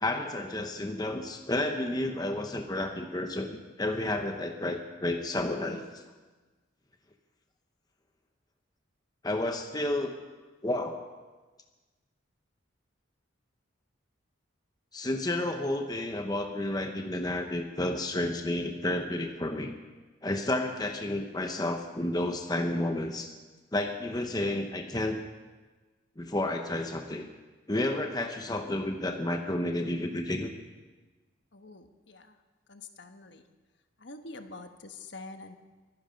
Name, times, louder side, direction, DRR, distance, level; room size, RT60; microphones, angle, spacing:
voice 1, 0.0-6.0 9.2-10.1 10.6-11.0 14.9-19.7 20.2-23.3 23.7-25.2 26.2-27.3 27.7-30.5, left 1 dB, 20° left, 5 dB, 0.9 m, -31 dB
voice 2, 31.5-32.4 32.7-33.4 34.0-35.6, left 3 dB, 60° left, 7 dB, 1.2 m, -46 dB
24.0 x 11.0 x 5.2 m, 1.3 s
head